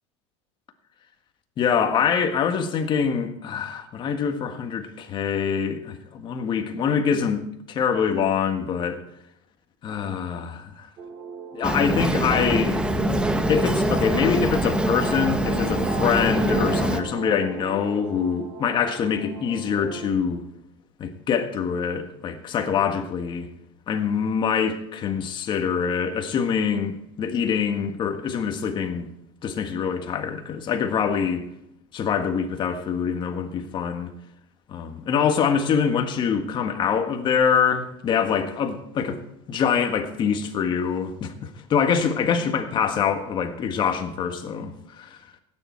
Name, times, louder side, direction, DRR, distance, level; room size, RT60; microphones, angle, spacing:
voice 1, 1.6-9.0 9.8-10.9 11.5-12.8 13.5-20.4 21.0-23.5 23.9-29.1 29.4-31.5 31.9-34.1 34.7-39.2 39.5-45.2, left 7 dB, 30° left, 1.6 m, -24 dB
sound 1, 11.0-20.1, right 3 dB, 35° right, 4.0 m, -37 dB
Boat Water vehicle, 11.6-17.0, right 1 dB, 5° right, 1.0 m, -24 dB
17.0 x 9.8 x 4.6 m
supercardioid pair, 150°, 15 cm